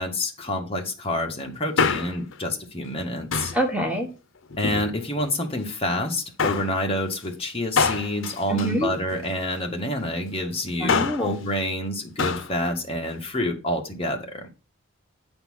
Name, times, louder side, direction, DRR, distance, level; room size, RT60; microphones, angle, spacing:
voice 1, 0.0-3.5 4.6-14.5, left 1 dB, 30° left, 1.7 m, -28 dB
Male speech man speaking, 1.6-2.4 3.3-3.7 4.5-5.3 6.4-6.8 7.8-9.4 10.7-11.3 12.2-12.5 12.8-12.9, left 5 dB, 70° left, 0.7 m, -26 dB
voice 2, 3.5-4.1 8.5-8.9 10.8-11.3, equal, 5° right, 1.1 m, -25 dB
9.9 x 4.4 x 5.6 m
head